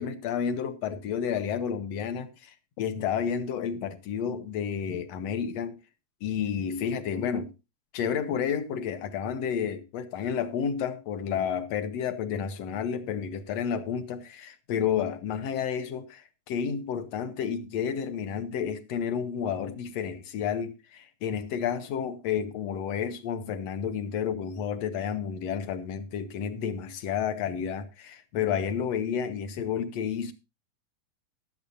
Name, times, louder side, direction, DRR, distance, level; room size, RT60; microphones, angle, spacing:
voice 1, 0.0-5.8 6.2-7.5 7.9-30.3, left 7 dB, 65° left, 2.2 m, -31 dB
15.5 x 12.0 x 2.6 m
omnidirectional pair, 3.4 m